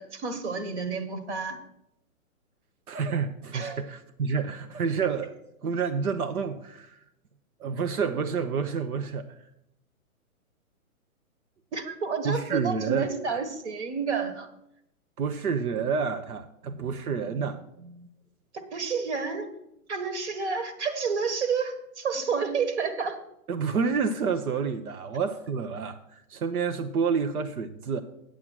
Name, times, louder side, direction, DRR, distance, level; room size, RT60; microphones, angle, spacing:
voice 1, 0.0-1.6 3.5-3.8 11.7-14.5 18.5-19.5 19.9-23.2, right 5 dB, 50° right, 1.5 m, -30 dB
voice 2, 2.9-6.9 7.6-9.2 12.2-13.1 15.2-18.1 23.5-28.0, right 5 dB, 85° right, 1.0 m, -29 dB
8.8 x 7.4 x 6.2 m
hypercardioid pair, 165°, 43 cm